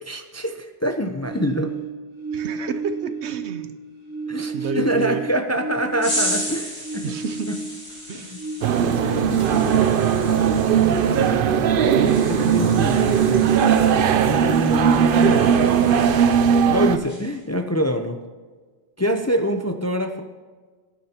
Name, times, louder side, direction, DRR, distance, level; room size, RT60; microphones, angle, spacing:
voice 1, 0.0-1.7 4.3-7.1 7.5-7.6 8.1-8.4 11.0-13.5 14.1-15.4 16.7-18.2 19.0-20.2, equal, 20° left, 6 dB, 0.5 m, -25 dB
sound 1, 1.2-3.7 4.0-7.9 8.3-10.0, right 4 dB, 10° right, 4.2 m, -32 dB
voice 2, 2.3-3.7 4.5-5.2 7.0-7.5 8.1-8.4 8.9-9.8, right 5 dB, 80° right, 10 dB, 1.1 m, -30 dB
sound 2, 6.0-16.7 17.0-17.4, equal, 75° left, 3.5 m, -35 dB
sound 3, 8.6-17.0, right 7 dB, 60° right, 0.7 m, -18 dB
18.0 x 10.0 x 2.9 m, 1.4 s
omnidirectional pair, 1.1 m